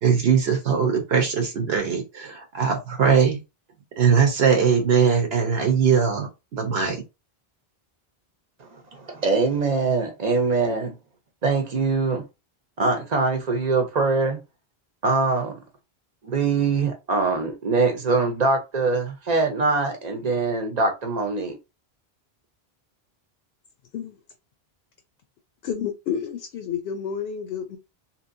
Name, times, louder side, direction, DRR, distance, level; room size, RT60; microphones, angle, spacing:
voice 1, 0.0-3.4 4.0-7.0, right 6 dB, 75° right, 1.0 m, -21 dB
voice 2, 8.6-10.9 11.4-12.2 12.8-14.4 15.0-15.6 16.2-21.5, right 4 dB, 45° right, 0.8 m, -23 dB
voice 3, 25.6-27.8, left 7 dB, 75° left, 0.8 m, -30 dB
3.0 x 2.8 x 2.6 m
omnidirectional pair, 1.0 m